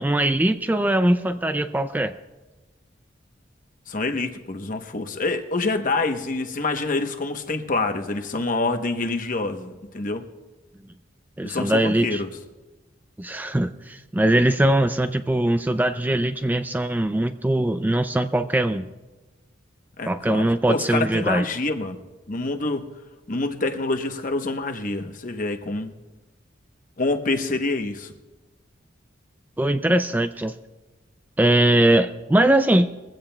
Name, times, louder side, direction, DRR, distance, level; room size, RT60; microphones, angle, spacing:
voice 1, 0.0-2.2 11.4-12.2 13.2-18.9 20.1-21.5 29.6-30.5 31.4-32.9, right 1 dB, 10° right, 10 dB, 0.3 m, -21 dB
voice 2, 3.9-10.2 11.4-12.3 20.0-22.0 22.3-22.9 23.3-25.9 27.0-28.1, left 3 dB, 45° left, 6 dB, 0.9 m, -26 dB
22.0 x 15.5 x 2.3 m, 1.2 s
head